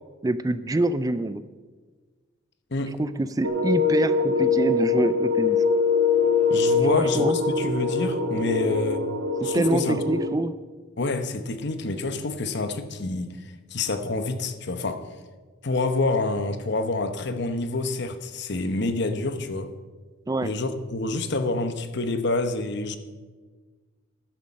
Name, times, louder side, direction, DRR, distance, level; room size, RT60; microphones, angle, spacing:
voice 1, 0.2-1.4 3.0-5.6 6.9-7.4 9.5-10.5 20.3-20.5, right 2 dB, 20° right, 14 dB, 0.3 m, -25 dB
sound 1, 3.4-10.3, left 4 dB, 80° right, 1.4 m, -23 dB
voice 2, 6.5-9.0 9.4-10.0 11.0-15.0 15.6-19.7 20.4-23.0, left 2 dB, 55° left, 9 dB, 0.9 m, -27 dB
13.0 x 10.5 x 5.2 m, 1.4 s
head